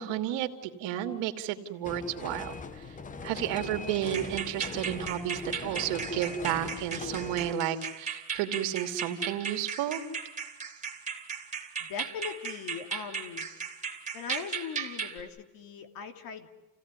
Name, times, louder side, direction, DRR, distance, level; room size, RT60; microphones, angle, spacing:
voice 1, 0.0-2.5 3.2-10.0, right 11 dB, 80° right, 6 dB, 2.7 m, -32 dB
sound 1, 1.8-7.5, left 4 dB, 20° left, 0.8 m, -41 dB
sound 2, 4.1-15.2, right 6 dB, 15° right, 2.9 m, -37 dB
voice 2, 11.8-13.5 14.1-16.5, left 6 dB, 50° left, 7 dB, 2.7 m, -40 dB
29.5 x 17.0 x 9.7 m, 1.2 s
cardioid pair, 165°, 43 cm